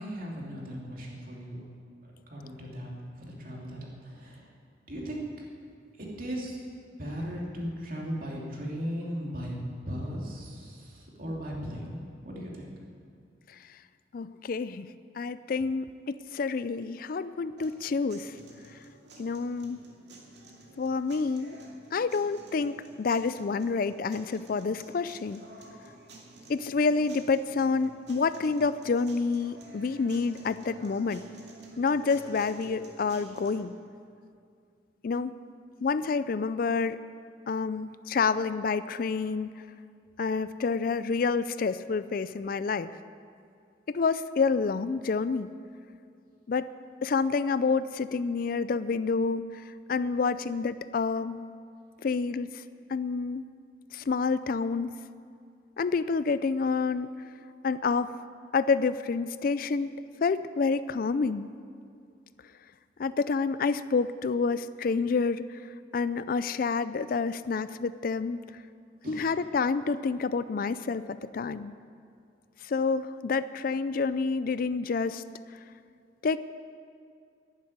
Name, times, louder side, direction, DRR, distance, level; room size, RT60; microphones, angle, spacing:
voice 1, 0.0-1.6 2.0-4.5 4.9-5.2 6.0-6.6 7.0-9.6 9.9-12.7 69.0-69.3, equal, 50° right, -2 dB, 2.8 m, -37 dB
voice 2, 14.1-14.9 15.2-18.4 19.2-19.8 20.8-21.6 21.9-25.4 26.5-31.3 31.8-33.7 35.0-35.4 35.8-37.0 37.5-39.5 40.2-42.9 43.9-45.5 46.5-46.7 47.0-51.4 52.0-52.6 52.9-53.4 53.9-54.9 55.8-57.1 57.6-58.1 58.5-59.9 60.2-61.5 63.0-68.4 69.1-71.7 72.6-75.2 76.2-76.4, left 4 dB, 50° left, 14 dB, 0.4 m, -28 dB
sound 1, 17.6-33.6, right 2 dB, 65° right, 2.4 m, -51 dB
11.0 x 11.0 x 9.5 m, 2.3 s
head